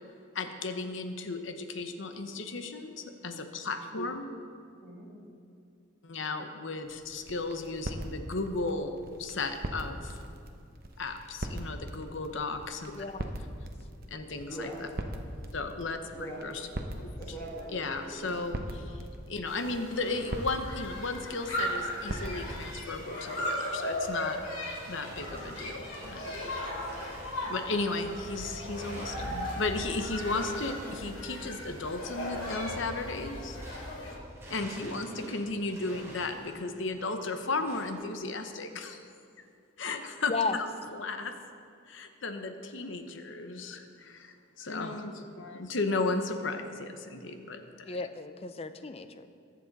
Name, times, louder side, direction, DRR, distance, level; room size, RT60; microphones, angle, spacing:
voice 1, 0.3-2.9 3.2-4.3 6.0-8.9 9.2-10.1 11.0-13.0 14.1-14.5 15.5-16.0 16.4-16.5 17.0-17.1 17.7-18.6 19.3-24.4 24.9-26.2 26.5-26.7 27.5-33.6 34.5-39.0 39.8-40.3 41.0-41.3 41.9-43.8 44.6-47.6 47.9-48.0, left 3 dB, 65° left, 7 dB, 0.9 m, -34 dB
voice 2, 4.8-5.1 14.4-14.9 16.1-16.5 17.1-18.4 35.0-35.3, right 1 dB, 15° left, -5 dB, 2.3 m, -42 dB
sound 1, 6.8-22.7, right 1 dB, 45° right, 0.9 m, -41 dB
voice 3, 13.0-13.3 40.3-40.6 47.8-49.3, left 4 dB, 30° left, 10 dB, 0.5 m, -34 dB
sound 2, 19.5-34.2, left 1 dB, 85° left, 3.6 m, -37 dB
sound 3, 24.8-34.0 34.3-38.0, right 1 dB, 15° right, 3.2 m, -50 dB
22.5 x 7.6 x 4.1 m, 2.5 s
head